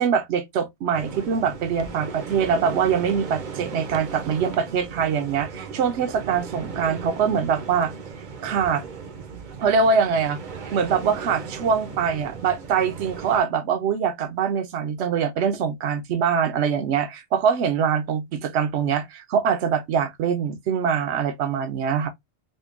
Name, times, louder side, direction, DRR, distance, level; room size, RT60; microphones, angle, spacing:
voice 1, 0.0-7.9 8.4-8.8 9.6-10.4 10.7-22.1, right 6 dB, 75° right, 0.9 m, -23 dB
sound 1, 0.9-13.4, right 5 dB, 50° right, 0.7 m, -36 dB
5.1 x 2.2 x 2.4 m
omnidirectional pair, 1.2 m